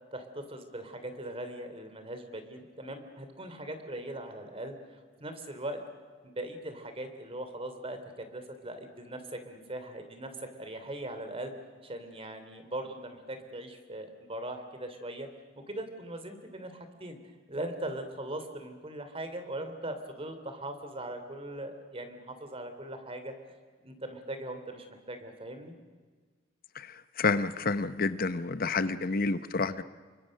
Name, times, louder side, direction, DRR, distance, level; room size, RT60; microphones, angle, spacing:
voice 1, 0.1-4.7 5.2-5.8 6.3-11.5 11.8-15.3 15.7-17.2 17.5-23.3 23.8-25.8, right 1 dB, 30° right, 8 dB, 3.1 m, -40 dB
voice 2, 27.2-29.8, left 4 dB, 50° left, 13 dB, 0.8 m, -29 dB
28.5 x 24.0 x 6.5 m, 1.5 s
head